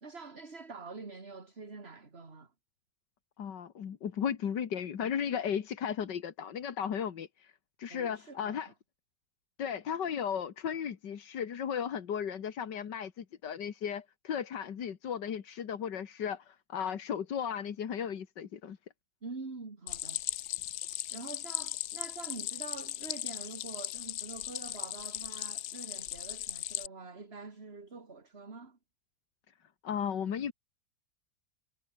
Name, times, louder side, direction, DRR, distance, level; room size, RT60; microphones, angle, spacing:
voice 1, 0.0-2.5 7.9-8.6 19.2-20.2 21.1-28.8, right 4 dB, 35° right, 2.8 m, -46 dB
voice 2, 3.4-7.5 7.8-8.7 9.6-18.8 29.8-30.5, left 8 dB, 85° left, 2.2 m, -35 dB
Stream, 19.9-26.9, left 14 dB, 70° left, 1.1 m, -38 dB
omnidirectional pair, 1.8 m